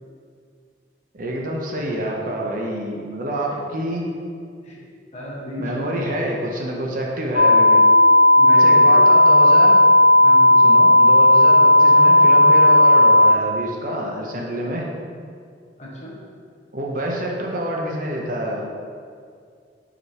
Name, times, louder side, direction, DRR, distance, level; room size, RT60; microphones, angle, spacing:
voice 1, 1.1-4.1 5.6-7.8 8.5-9.8 10.6-14.9 16.7-18.7, right 1 dB, 45° right, -1 dB, 0.7 m, -27 dB
voice 2, 5.1-6.0 8.4-9.0 10.2-10.6 15.8-16.2, equal, 40° left, -5 dB, 1.2 m, -33 dB
sound 1, 7.3-13.3, left 1 dB, 75° left, 0.7 m, -12 dB
6.4 x 5.0 x 2.9 m, 2.2 s
head